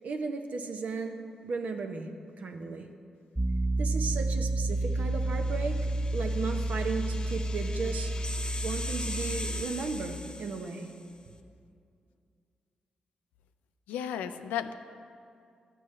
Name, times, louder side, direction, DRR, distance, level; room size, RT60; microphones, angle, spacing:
voice 1, 0.0-2.1 2.4-2.9 3.8-8.1 8.6-10.9, right 4 dB, 65° right, 5 dB, 0.8 m, -35 dB
Piano, 3.4-9.6, right 1 dB, 10° right, 0.6 m, -30 dB
sound 1, 5.1-11.0, left 1 dB, 35° left, 0.7 m, -41 dB
voice 2, 13.9-14.7, left 9 dB, 85° left, 10 dB, 0.3 m, -33 dB
12.5 x 7.7 x 3.3 m, 2.4 s
supercardioid pair, 45°, 3 cm